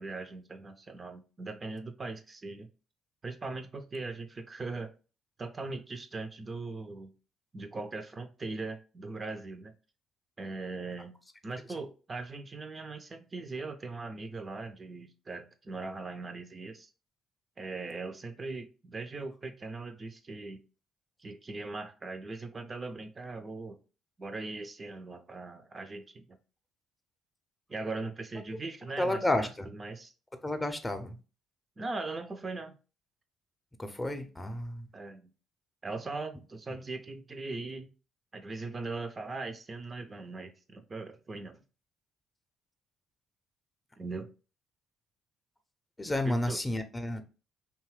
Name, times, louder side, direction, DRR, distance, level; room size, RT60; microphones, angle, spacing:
voice 1, 0.0-2.7 3.2-4.9 5.4-7.1 7.5-9.7 10.4-11.2 11.4-16.9 17.6-20.6 21.2-23.8 24.2-26.4 27.7-30.1 31.8-32.7 34.9-35.3 35.8-37.9 38.3-41.6 44.0-44.3 46.3-46.6, right 3 dB, 35° right, 0.4 m, -40 dB
voice 2, 29.0-29.7 30.4-31.2 33.8-34.9 46.0-47.2, left 1 dB, 15° left, 0.5 m, -31 dB
2.7 x 2.3 x 3.0 m
hypercardioid pair, 50°, 0 cm